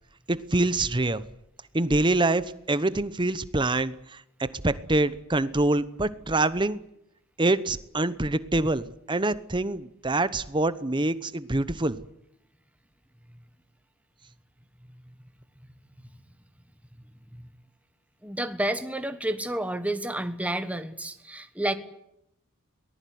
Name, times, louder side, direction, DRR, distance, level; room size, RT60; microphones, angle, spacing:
voice 1, 0.3-1.2 1.7-4.0 4.4-6.8 7.4-12.0, right 2 dB, 20° right, 1.0 m, -25 dB
voice 2, 18.2-21.7, right 1 dB, 5° right, 1.4 m, -30 dB
23.0 x 19.5 x 9.5 m
head